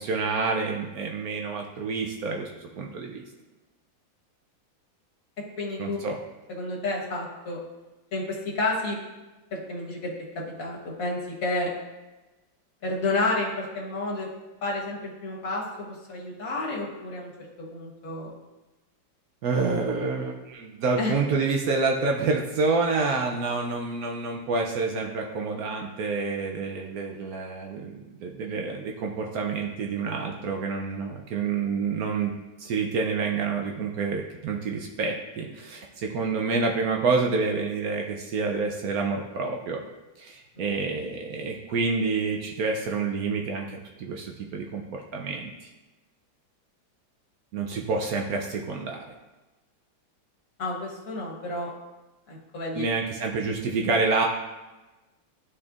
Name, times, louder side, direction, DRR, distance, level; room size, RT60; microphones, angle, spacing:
voice 1, 0.0-2.5 2.7-3.2 5.8-6.2 19.4-32.3 32.6-39.8 40.2-45.5 47.5-49.0 52.7-54.2, right 4 dB, 75° right, 1 dB, 0.8 m, -28 dB
voice 2, 5.6-6.0 6.5-7.6 8.1-9.0 9.5-10.1 10.3-11.7 12.8-14.3 14.6-17.3 17.6-18.4 21.0-21.1 40.6-40.8 50.6-51.7 52.3-52.9, left 2 dB, 45° left, -4 dB, 1.6 m, -30 dB
11.0 x 4.4 x 2.4 m, 1.1 s
omnidirectional pair, 2.2 m